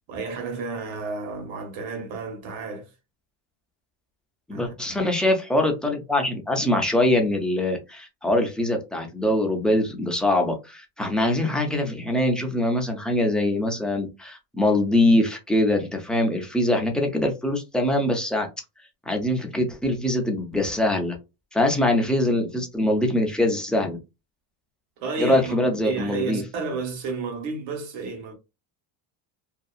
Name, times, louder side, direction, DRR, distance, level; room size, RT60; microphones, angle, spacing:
voice 1, 0.1-2.9 4.5-4.7 25.0-25.5 25.8-28.3, right 4 dB, 70° right, 1.2 m, -31 dB
voice 2, 4.5-18.5 19.1-21.2 21.5-24.0 25.2-26.4, left 1 dB, ahead, 0.4 m, -23 dB
2.7 x 2.3 x 2.3 m
cardioid pair, 130°, 47 cm